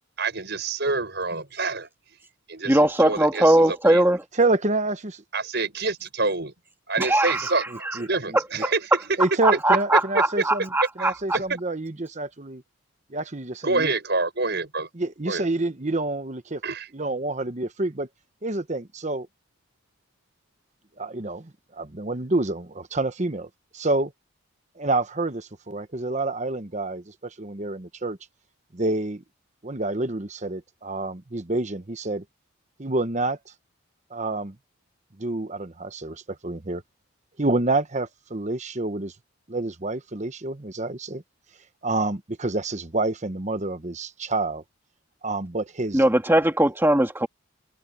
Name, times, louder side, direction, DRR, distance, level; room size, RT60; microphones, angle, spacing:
voice 1, 0.2-1.9 2.5-4.0 5.3-6.5 6.9-9.4 9.9-10.5 11.0-11.6 13.6-14.9 15.3-15.5 16.6-16.9, right 3 dB, 50° right, 7.3 m, -27 dB
voice 2, 2.7-4.2 7.0-7.4 7.9-8.0 8.6-8.7 9.4-11.1 45.9-47.3, right 1 dB, 10° right, 1.9 m, -20 dB
voice 3, 4.3-5.2 7.7-8.4 9.2-10.7 11.0-12.6 13.1-13.9 14.9-16.6 16.9-18.1 18.4-19.3 21.0-24.1 24.8-28.2 28.7-29.2 29.6-32.2 32.8-33.4 34.1-34.6 35.2-36.8 37.4-39.1 39.5-41.2 41.8-44.6 45.2-46.0, right 2 dB, 35° right, 1.0 m, -28 dB
head